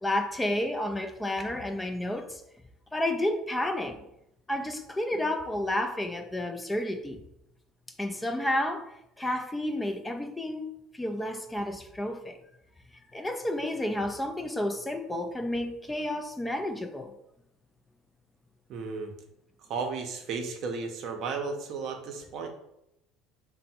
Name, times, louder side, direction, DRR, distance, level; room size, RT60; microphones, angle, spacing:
voice 1, 0.0-2.4 2.9-4.0 4.5-7.2 8.0-10.7 10.9-12.4 13.1-17.2, left 1 dB, 10° left, 0.3 m, -31 dB
voice 2, 18.7-19.1 19.7-22.5, right 4 dB, 60° right, 0.6 m, -34 dB
3.3 x 2.0 x 4.2 m
supercardioid pair, 95°, 0 cm